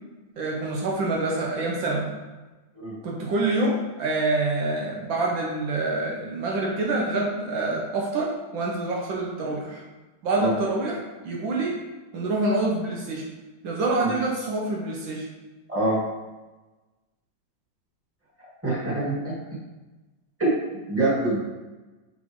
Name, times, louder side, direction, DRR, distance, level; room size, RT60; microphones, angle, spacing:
voice 1, 0.4-2.1 3.0-9.8 10.2-11.0 11.2-11.7 12.1-13.3 13.6-15.2, right 2 dB, 75° right, -1 dB, 1.6 m, -26 dB
voice 2, 15.7-16.0 18.6-19.4 20.4-20.5 20.9-21.4, right 2 dB, 5° right, -7 dB, 1.7 m, -24 dB
7.5 x 4.1 x 3.1 m, 1.2 s
omnidirectional pair, 2.2 m